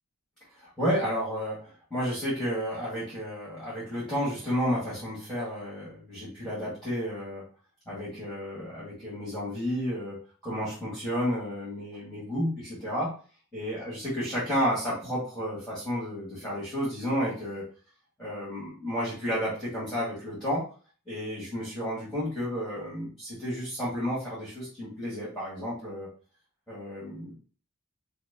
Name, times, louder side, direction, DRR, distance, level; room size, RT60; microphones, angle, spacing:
voice 1, 0.6-7.4 7.9-10.2 10.4-13.1 13.5-17.6 18.2-20.6 21.1-26.1 26.7-27.4, equal, ahead, -9 dB, 1.7 m, -31 dB
5.8 x 2.1 x 2.8 m, 0.39 s
head